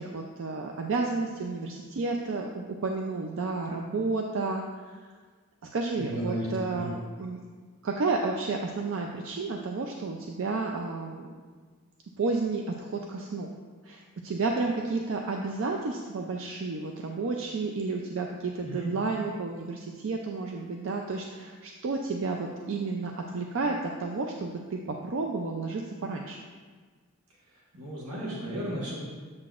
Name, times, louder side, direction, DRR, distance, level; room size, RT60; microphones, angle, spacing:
voice 1, 0.0-5.0 5.7-7.4 7.8-11.3 12.2-13.5 13.8-26.4, right 3 dB, 60° right, 1 dB, 0.4 m, -31 dB
voice 2, 6.0-6.8 18.6-18.9 27.7-29.0, equal, 85° right, -5 dB, 1.3 m, -34 dB
7.5 x 5.9 x 2.4 m, 1.5 s
head